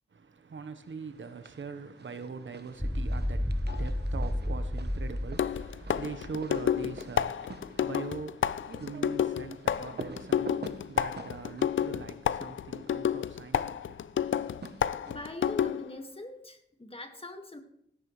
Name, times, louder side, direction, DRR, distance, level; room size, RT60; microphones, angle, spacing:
voice 1, 0.1-14.5, right 5 dB, 80° right, 1.2 m, -42 dB
sound 1, 1.1-1.7 2.0-13.0 14.2-15.4, right 4 dB, 60° right, 1.0 m, -48 dB
sound 2, 2.8-7.0, left 1 dB, ahead, 0.4 m, -32 dB
sound 3, 3.7-3.9 5.4-16.0, left 9 dB, 85° left, 0.4 m, -30 dB
voice 2, 15.1-17.6, left 2 dB, 30° left, 1.9 m, -42 dB
16.5 x 13.5 x 3.3 m
wide cardioid pair, 65°, 20 cm